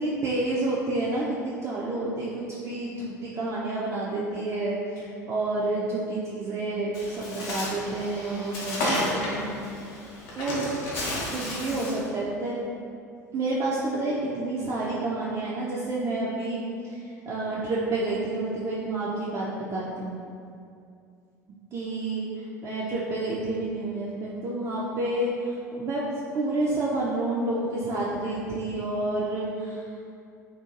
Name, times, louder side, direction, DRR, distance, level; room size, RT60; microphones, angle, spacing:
voice 1, 0.0-9.4 10.4-11.1 11.3-12.6 13.3-20.2 21.7-26.0 26.3-29.9, right 2 dB, 35° right, -7 dB, 0.4 m, -29 dB
Bird, 6.9-12.1, left 1 dB, 60° left, 0.6 m, -32 dB
2.7 x 2.5 x 2.4 m, 2.4 s
figure-of-eight pair, 70°, 9 cm